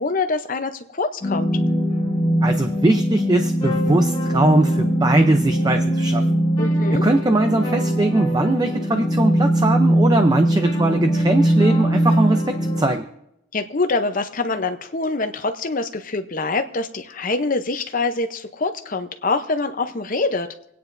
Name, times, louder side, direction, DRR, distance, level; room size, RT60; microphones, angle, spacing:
voice 1, 0.0-1.5 6.6-7.0 13.5-20.5, left 3 dB, 40° left, 8 dB, 0.7 m, -25 dB
sound 1, 1.2-12.9, right 1 dB, 20° left, 2.3 m, -20 dB
voice 2, 2.4-6.2 6.9-13.1, right 2 dB, 20° right, 6 dB, 0.5 m, -20 dB
27.0 x 9.3 x 2.6 m, 0.80 s
head